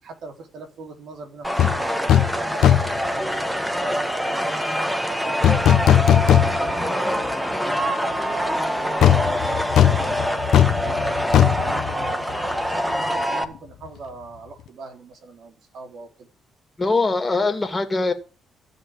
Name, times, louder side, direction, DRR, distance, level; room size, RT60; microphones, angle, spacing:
voice 1, 0.0-4.6 5.1-7.3 7.6-10.4 10.8-16.3, right 3 dB, 70° right, 3.8 m, -39 dB
sound 1, 1.4-13.4, equal, 5° right, 1.7 m, -25 dB
sound 2, 1.6-1.8 2.1-2.4 2.6-3.0 5.4-6.9 7.2-7.3 9.0-12.7 12.9-13.1, left 10 dB, 75° left, 1.1 m, -18 dB
voice 2, 16.8-18.1, left 3 dB, 20° left, 2.6 m, -22 dB
15.0 x 6.0 x 8.5 m
cardioid pair, 90°, 0 cm